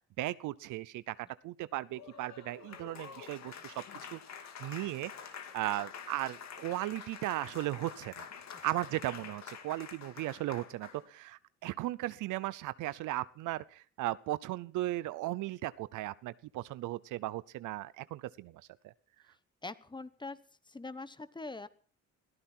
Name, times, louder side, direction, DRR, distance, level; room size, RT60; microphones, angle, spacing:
voice 1, 0.2-3.7 4.1-4.2 4.6-8.3 8.6-18.9, right 16 dB, 90° right, 17 dB, 0.7 m, -37 dB
Applause, 1.9-11.1, left 7 dB, 65° left, 2.3 m, -48 dB
voice 2, 19.6-20.4 20.6-21.7, left 3 dB, 15° left, 15 dB, 1.1 m, -43 dB
21.0 x 14.0 x 4.5 m, 0.43 s
cardioid pair, 90°, 30 cm